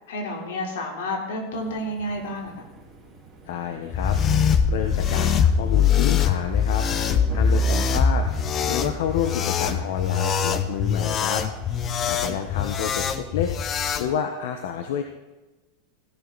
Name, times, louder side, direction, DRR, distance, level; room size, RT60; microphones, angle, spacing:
voice 1, 0.1-2.7 12.3-12.4, left 1 dB, 85° left, 1 dB, 4.0 m, -30 dB
sound 1, 1.5-13.0, right 3 dB, 10° right, 5.0 m, -46 dB
voice 2, 3.4-4.2 4.7-6.9 7.3-11.4 12.1-15.0, left 8 dB, 70° left, 6 dB, 1.2 m, -29 dB
sound 2, 3.9-14.1, left 6 dB, 25° left, 0.8 m, -22 dB
16.5 x 11.0 x 4.1 m, 1.1 s
supercardioid pair, 170°, 0 cm